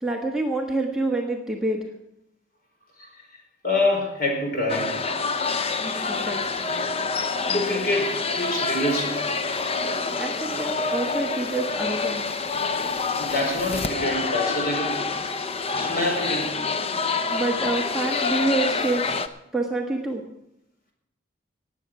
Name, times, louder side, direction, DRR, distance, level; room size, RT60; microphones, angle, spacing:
voice 1, 0.0-1.8 6.0-6.4 10.2-12.2 17.3-19.2 19.5-20.2, right 2 dB, 5° right, -1 dB, 1.4 m, -27 dB
voice 2, 3.6-4.9 7.5-9.2 13.2-14.9 15.7-16.5, left 1 dB, 50° left, 1 dB, 4.8 m, -26 dB
sound 1, 4.7-19.3, left 4 dB, 30° left, 0.7 m, -27 dB
18.5 x 8.3 x 6.1 m, 0.82 s
head